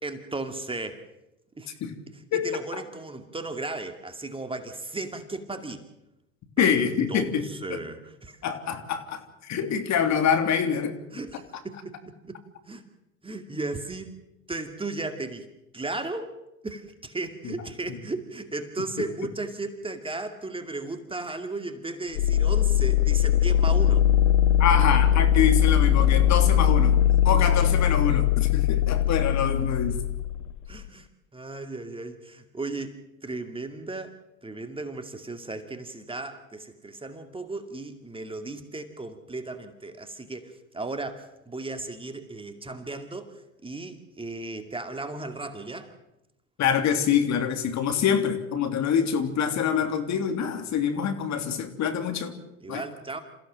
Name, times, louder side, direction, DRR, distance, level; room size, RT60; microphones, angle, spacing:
voice 1, 0.0-1.0 1.6-1.7 2.1-5.8 6.6-6.7 7.1-8.4 11.1-11.9 12.3-12.4 12.7-12.8 13.2-14.1 14.5-15.5 15.7-16.3 16.6-24.1 30.7-31.1 31.3-32.9 33.2-34.1 34.4-45.9 52.6-53.2, right 2 dB, 15° right, 7 dB, 2.4 m, -35 dB
voice 2, 2.3-2.8 6.6-7.4 7.7-7.8 8.4-10.9 17.4-17.5 17.9-18.0 24.6-27.0 27.2-30.0 46.6-52.3 52.7-52.8, left 7 dB, 45° left, 7 dB, 3.2 m, -25 dB
sound 1, 22.2-30.9, left 10 dB, 80° left, 0.9 m, -21 dB
28.0 x 15.5 x 7.6 m, 0.90 s
hypercardioid pair, 85°, 38 cm